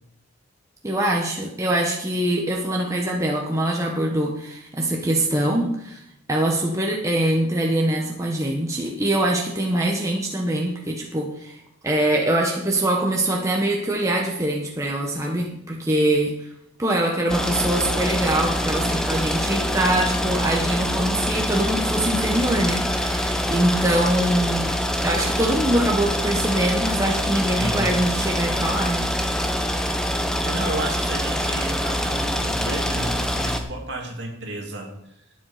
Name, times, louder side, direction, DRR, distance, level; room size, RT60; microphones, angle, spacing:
voice 1, 0.8-6.0 6.3-16.5 16.8-24.7 25.0-29.1, right 1 dB, 15° right, -1 dB, 1.2 m, -23 dB
sound 1, 17.3-33.6, equal, 5° left, 0.8 m, -25 dB
voice 2, 27.6-27.9 30.4-34.9, right 1 dB, 55° right, 1 dB, 2.4 m, -31 dB
11.5 x 9.3 x 5.0 m, 0.78 s
head